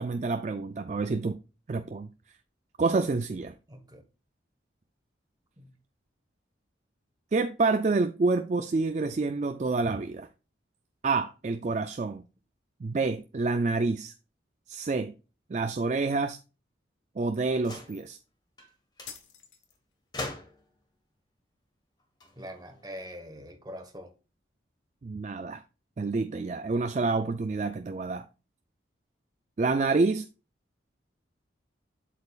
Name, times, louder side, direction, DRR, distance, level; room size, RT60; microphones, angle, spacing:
voice 1, 0.0-1.4 1.7-2.1 2.8-3.5 7.3-10.3 11.0-12.2 12.8-14.1 14.7-15.1 15.5-16.4 17.2-18.2 25.0-25.6 26.0-28.2 29.6-30.3, right 3 dB, 40° right, 0.4 m, -28 dB
voice 2, 3.7-4.0 5.6-5.7 22.4-24.1, equal, 20° right, 1.2 m, -43 dB
sound 1, 17.6-18.1 18.6-18.7 19.0-19.2 20.1-20.8 22.0-23.1, left 2 dB, 20° left, 1.4 m, -41 dB
sound 2, 19.1-20.1, left 7 dB, 80° left, 1.3 m, -47 dB
7.7 x 7.5 x 2.4 m
head